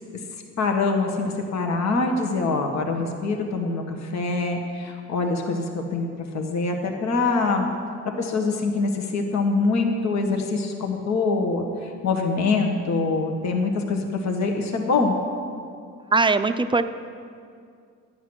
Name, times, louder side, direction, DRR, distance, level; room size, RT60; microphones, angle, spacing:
voice 1, 0.6-6.1 6.3-7.7 8.2-15.2, left 3 dB, 60° left, 3 dB, 1.5 m, -24 dB
voice 2, 16.1-16.8, right 3 dB, 15° right, 9 dB, 0.5 m, -20 dB
12.0 x 10.0 x 6.3 m, 2.3 s
cardioid pair, 90°, 30 cm